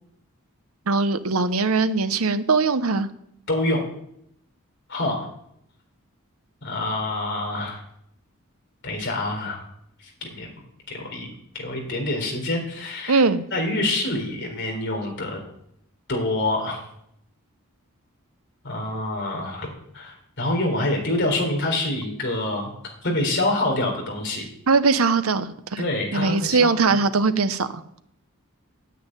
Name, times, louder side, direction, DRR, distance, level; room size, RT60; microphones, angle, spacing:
voice 1, 0.9-3.1 13.1-13.4 24.7-25.8 26.1-27.8, right 4 dB, 80° right, 11 dB, 0.9 m, -21 dB
voice 2, 3.5-3.9 4.9-5.3 6.6-7.8 8.8-9.6 10.2-10.5 10.9-11.3 11.5-13.2 13.5-15.4 16.1-16.8 18.6-19.7 19.9-22.7 23.0-24.5 25.8-27.0, left 2 dB, 55° left, 1 dB, 3.9 m, -26 dB
9.4 x 9.4 x 9.1 m, 0.74 s
head